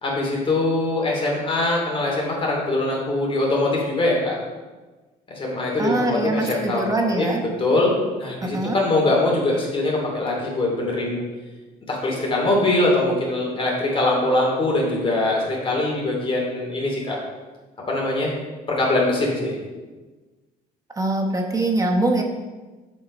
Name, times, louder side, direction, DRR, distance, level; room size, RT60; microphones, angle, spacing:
voice 1, 0.0-4.4 5.3-7.3 7.6-11.2 11.9-17.2 17.9-18.3 18.8-19.6, left 2 dB, 30° left, -2 dB, 2.7 m, -22 dB
voice 2, 5.8-7.4 8.5-8.8 21.0-22.2, right 2 dB, 20° right, 2 dB, 1.1 m, -23 dB
7.3 x 5.9 x 5.3 m, 1.3 s
cardioid pair, 110°, 17 cm